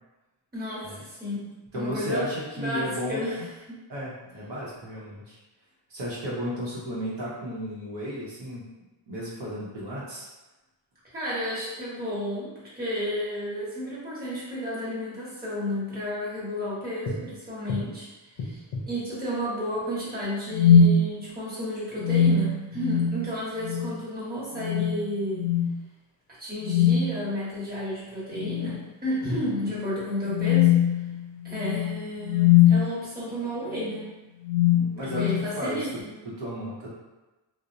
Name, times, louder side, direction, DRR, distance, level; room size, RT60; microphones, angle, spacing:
voice 1, 0.5-1.5 1.7-2.3 2.6-3.4 3.7-3.8 11.1-18.1 18.4-25.5 26.4-30.7 31.4-34.1 35.0-36.1, equal, 20° right, -9 dB, 1.0 m, -32 dB
voice 2, 1.7-3.5 3.9-5.4 5.9-8.6 9.1-10.3 29.3-29.7 34.7-35.3 35.6-36.9, equal, 70° right, -7 dB, 0.7 m, -34 dB
sound 1, 17.1-17.2 17.7-17.9 18.4-18.9 20.5-21.0 22.0-23.3 23.6-23.9 24.6-25.0 25.3-25.7 26.6-27.2 28.3-28.8 29.2-29.4 30.3-32.8 33.7-34.0 34.4-35.5, left 7 dB, 75° left, 0.5 m, -22 dB
2.8 x 2.0 x 2.5 m, 1.1 s
wide cardioid pair, 145°, 45 cm